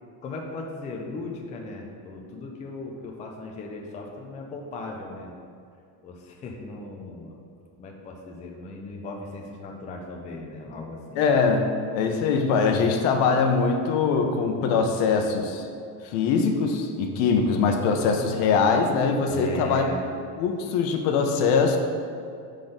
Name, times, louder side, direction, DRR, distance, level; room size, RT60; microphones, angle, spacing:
voice 1, 0.2-5.3 6.0-7.4 7.8-11.2 19.3-20.0, left 2 dB, 20° left, 1 dB, 0.3 m, -37 dB
voice 2, 11.2-15.6 16.0-19.8 20.4-21.8, left 5 dB, 75° left, 4 dB, 0.9 m, -22 dB
5.9 x 3.8 x 5.0 m, 2.4 s
cardioid pair, 150°, 43 cm